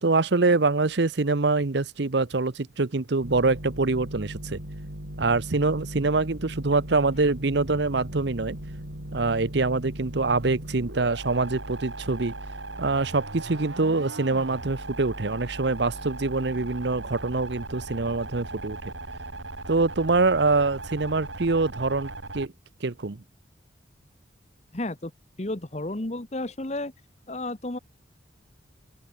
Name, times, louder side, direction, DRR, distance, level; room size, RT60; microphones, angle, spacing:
voice 1, 0.0-4.6 5.2-8.6 9.1-12.3 12.8-18.9 19.7-22.5 22.8-23.2, right 3 dB, 60° right, 0.8 m, -25 dB
sound 1, 3.2-22.5, right 1 dB, 75° right, 6.7 m, -38 dB
voice 2, 24.7-25.1 25.4-26.9 27.3-27.8, left 2 dB, 35° left, 1.2 m, -32 dB
open air
head